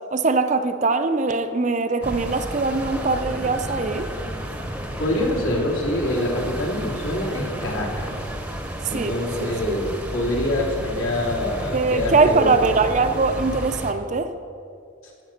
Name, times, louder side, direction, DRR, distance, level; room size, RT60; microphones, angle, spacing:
voice 1, 0.1-4.1 8.8-9.8 11.7-14.3, right 3 dB, 35° right, 8 dB, 0.5 m, -22 dB
sound 1, 2.0-13.9, equal, 5° right, 0.8 m, -32 dB
voice 2, 5.0-8.3 8.9-12.8, left 1 dB, 75° left, -3 dB, 2.8 m, -25 dB
15.5 x 7.3 x 5.8 m, 2.5 s
head